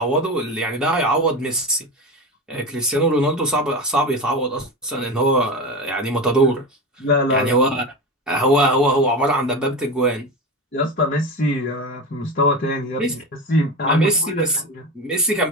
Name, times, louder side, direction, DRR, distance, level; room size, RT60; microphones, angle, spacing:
voice 1, 0.0-1.9 2.5-6.6 7.3-7.8 8.3-10.3 13.0-13.1 13.8-14.6 14.9-15.5, right 1 dB, 5° right, 1.3 m, -20 dB
voice 2, 7.0-7.5 10.7-13.2 13.5-14.8, left 1 dB, 40° left, 0.9 m, -22 dB
5.8 x 2.1 x 3.3 m
head